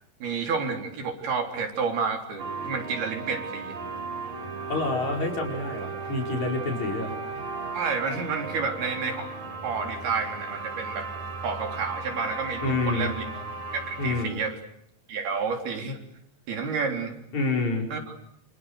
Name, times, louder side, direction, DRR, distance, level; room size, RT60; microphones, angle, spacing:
voice 1, 0.2-3.7 7.7-9.3 9.6-11.1 11.4-13.2 13.7-14.6 15.1-16.0 16.5-17.1 17.9-18.0, right 5 dB, 80° right, 4 dB, 5.7 m, -30 dB
sound 1, 2.4-14.2, right 3 dB, 60° right, 6.5 m, -36 dB
voice 2, 4.7-7.1 12.6-13.1 14.0-14.4 17.3-17.9, left 2 dB, 45° left, 2 dB, 6.2 m, -28 dB
28.5 x 28.5 x 6.7 m, 0.71 s
omnidirectional pair, 4.5 m